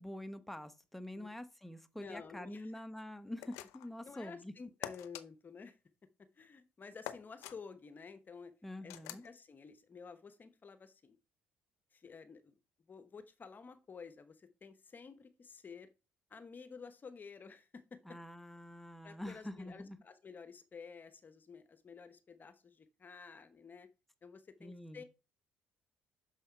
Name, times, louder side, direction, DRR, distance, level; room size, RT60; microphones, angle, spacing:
voice 1, 0.0-4.5 8.6-9.2 18.0-20.0 24.6-25.0, left 1 dB, 5° left, 1.0 m, -46 dB
voice 2, 2.0-2.7 4.0-5.8 6.3-8.5 8.8-11.2 11.9-12.6 12.9-15.9 16.3-18.2 19.0-23.9 24.2-25.0, left 5 dB, 35° left, 1.0 m, -52 dB
sound 1, 3.4-4.0 4.8-5.2 7.0-7.6 8.9-9.3, left 13 dB, 75° left, 0.6 m, -45 dB
6.4 x 5.5 x 4.5 m
hypercardioid pair, 60°, 5 cm